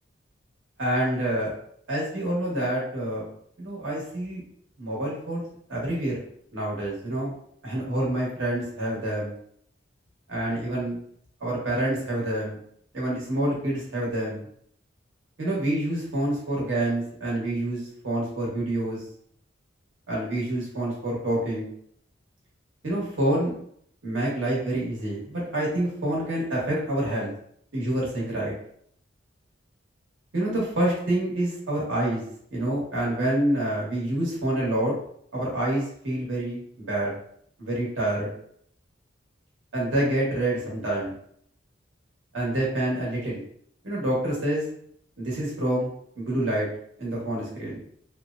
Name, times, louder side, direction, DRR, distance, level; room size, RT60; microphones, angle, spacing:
voice 1, 0.8-1.5 1.9-3.3 3.6-4.4 4.8-5.4 5.7-6.2 6.5-7.3 7.6-9.3 10.3-11.0 11.4-12.6 12.9-14.4 15.4-19.0 20.1-21.7 22.8-23.5 24.0-27.3 27.7-28.5 30.3-32.2 32.5-34.9 35.3-37.1 37.6-38.3 39.7-41.1 42.3-43.4 43.8-44.7 45.2-46.7 47.0-47.8, right 1 dB, 85° right, -4 dB, 1.1 m, -27 dB
2.9 x 2.1 x 2.4 m, 0.66 s
head